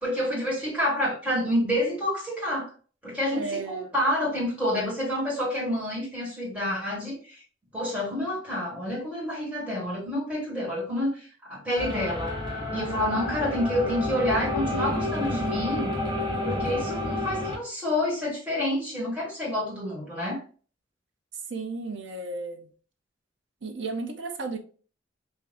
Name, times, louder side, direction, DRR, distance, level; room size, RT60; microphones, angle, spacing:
voice 1, 0.0-2.7 3.0-7.4 7.7-12.3 12.7-15.9 16.4-20.4, left 1 dB, 5° right, 1.8 m, -28 dB
voice 2, 3.3-3.9 21.5-22.7 23.6-24.6, right 3 dB, 70° right, 0.7 m, -34 dB
sound 1, 11.8-17.6, left 1 dB, 20° right, 1.0 m, -30 dB
3.6 x 2.6 x 3.3 m
head